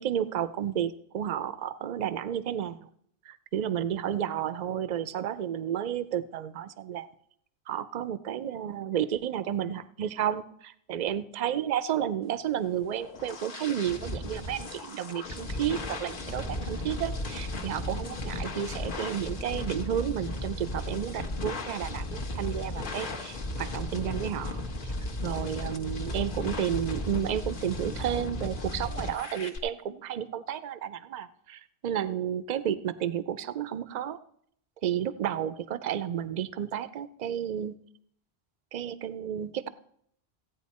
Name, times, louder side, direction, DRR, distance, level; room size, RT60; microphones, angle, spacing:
voice 1, 0.0-2.9 3.3-7.1 7.7-24.6 25.2-34.2 34.8-37.8 38.7-39.7, right 10 dB, 50° right, 15 dB, 0.5 m, -32 dB
sound 1, 12.6-29.6, left 1 dB, 55° left, 1.2 m, -35 dB
15.5 x 9.0 x 4.2 m, 0.69 s
omnidirectional pair, 1.1 m